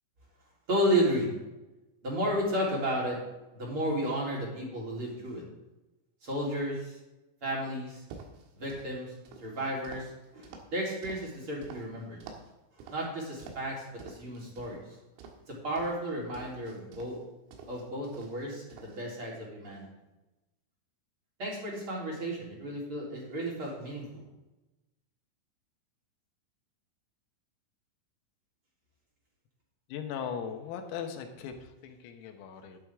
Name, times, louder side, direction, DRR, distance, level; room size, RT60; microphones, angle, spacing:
voice 1, 0.7-1.3 2.0-3.2 3.5-5.4 6.2-7.0 7.4-8.0 8.6-9.1 9.4-12.2 12.9-14.8 15.5-17.2 17.7-19.9 21.4-24.3, equal, 30° right, -4 dB, 3.8 m, -33 dB
sound 1, 7.9-8.9 9.3-11.8 12.2-12.5 12.8-13.7 14.0-14.8 15.2-17.2 17.5-18.5 18.7-19.0, right 5 dB, 85° right, 4.2 m, -49 dB
voice 2, 29.9-32.8, left 7 dB, 85° left, 5 dB, 4.0 m, -39 dB
12.0 x 11.5 x 3.7 m, 1.0 s
omnidirectional pair, 5.9 m